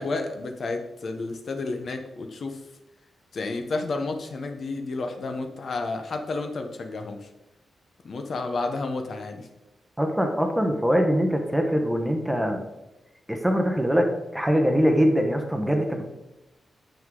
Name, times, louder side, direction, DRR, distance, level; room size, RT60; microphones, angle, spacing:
voice 1, 0.0-2.6 3.3-7.3 8.0-9.5, left 3 dB, 45° left, 5 dB, 0.9 m, -31 dB
voice 2, 10.0-12.6 13.3-16.0, equal, 5° right, 4 dB, 1.0 m, -23 dB
9.2 x 7.5 x 3.8 m, 0.97 s
wide cardioid pair, 165°, 0 cm